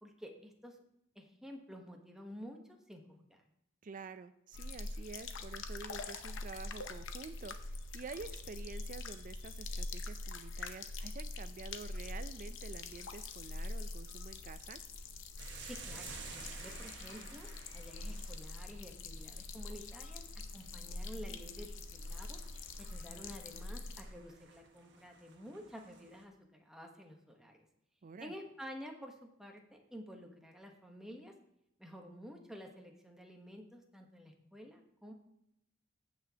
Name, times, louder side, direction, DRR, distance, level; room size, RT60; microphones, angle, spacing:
voice 1, 0.0-0.8 1.1-3.4 15.6-17.5 17.7-20.2 20.5-21.7 22.1-22.4 22.8-27.7 28.2-31.3 31.8-35.1, equal, 5° right, 2 dB, 1.1 m, -51 dB
voice 2, 3.8-14.8 22.9-23.4 28.0-28.3, right 4 dB, 45° right, 13 dB, 0.4 m, -49 dB
sound 1, 4.5-24.0, left 2 dB, 70° left, 0.8 m, -44 dB
sound 2, 15.4-26.2, right 5 dB, 60° right, 1.2 m, -54 dB
15.0 x 6.1 x 2.8 m, 0.81 s
head